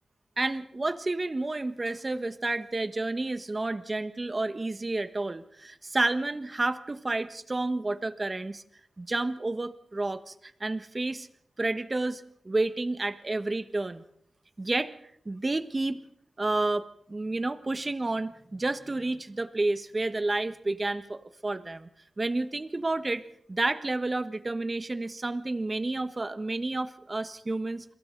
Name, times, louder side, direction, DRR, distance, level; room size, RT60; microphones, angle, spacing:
voice 1, 0.4-8.6 9.0-10.3 10.6-11.3 11.6-14.0 14.6-14.9 15.2-16.0 16.4-21.9 22.2-23.2 23.5-27.8, right 2 dB, 30° right, 11 dB, 1.4 m, -30 dB
29.5 x 22.5 x 4.0 m, 0.68 s
cardioid pair, 65°, 0 cm